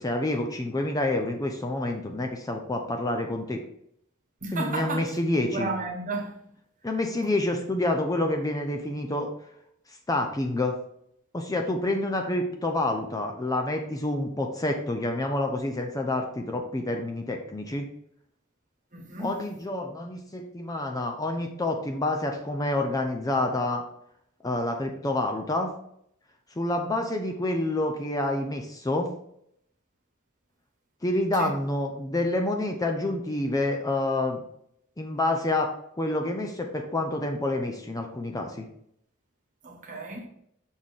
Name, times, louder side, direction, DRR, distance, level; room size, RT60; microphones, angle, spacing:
voice 1, 0.0-3.6 4.5-5.7 6.8-9.3 10.1-10.7 11.3-17.9 19.2-23.8 24.4-25.7 26.6-29.1 31.0-34.4 35.0-35.7 36.0-38.7, left 2 dB, 15° left, 0.6 m, -28 dB
voice 2, 4.4-5.0 5.4-6.4 7.2-7.3 18.9-19.3 31.4-31.5 39.6-40.3, right 3 dB, 40° right, 1.3 m, -33 dB
6.3 x 4.2 x 3.6 m
head